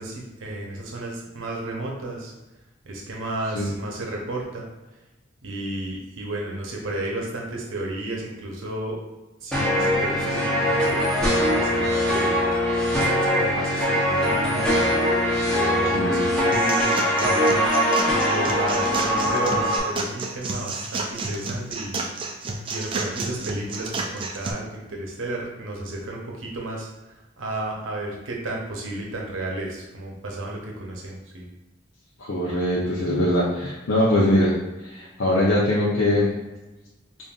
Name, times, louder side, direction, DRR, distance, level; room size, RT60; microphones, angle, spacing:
voice 1, 0.0-2.3 2.9-4.7 5.4-9.0 9.4-12.4 12.9-14.9 15.5-17.4 18.0-22.0 22.7-26.9 27.4-31.5, right 2 dB, 85° right, -1 dB, 0.7 m, -33 dB
sound 1, 9.5-19.8, equal, 5° left, 0.7 m, -22 dB
voice 2, 15.9-16.4 32.2-34.5 34.8-36.3, left 1 dB, 90° left, -6 dB, 0.6 m, -22 dB
sound 2, 16.5-24.5, right 3 dB, 25° right, 0.3 m, -31 dB
5.2 x 2.5 x 2.4 m, 1.1 s
head